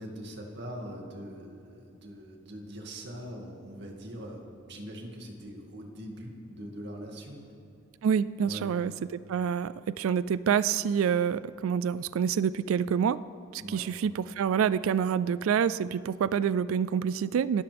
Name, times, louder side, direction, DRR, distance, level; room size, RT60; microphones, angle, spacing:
voice 1, 0.0-7.4 8.4-8.8 13.6-13.9, equal, 60° right, 1 dB, 2.2 m, -42 dB
voice 2, 8.0-13.2 13.5-17.6, right 7 dB, 85° right, 17 dB, 0.3 m, -27 dB
28.0 x 13.0 x 3.5 m, 2.5 s
head